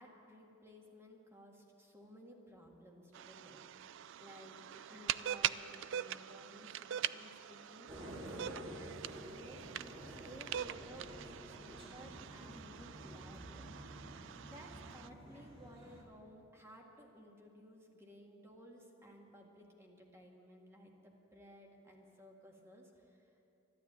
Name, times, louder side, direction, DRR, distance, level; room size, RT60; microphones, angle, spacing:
voice 1, 0.0-13.7 14.4-23.3, equal, 15° right, 0 dB, 1.9 m, -57 dB
sound 1, 3.1-15.1, right 11 dB, 65° right, 0.3 m, -43 dB
sound 2, 7.9-16.0, equal, 30° right, 2.0 m, -50 dB
13.0 x 12.0 x 8.7 m, 2.9 s
head